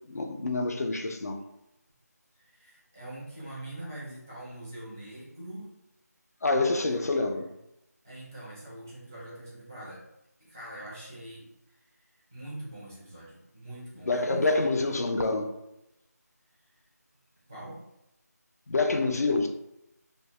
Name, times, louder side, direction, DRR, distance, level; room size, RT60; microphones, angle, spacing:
voice 1, 0.1-1.4 6.4-7.5 14.1-15.5 18.7-19.5, left 3 dB, 65° left, 5 dB, 0.4 m, -27 dB
voice 2, 2.4-5.7 6.9-7.0 7.3-7.5 8.0-10.0 10.4-14.6 14.9-15.1 16.5-16.6 17.5-17.8, right 1 dB, 10° right, -8 dB, 0.4 m, -43 dB
2.2 x 2.0 x 2.9 m, 0.87 s
figure-of-eight pair, 175°, 9 cm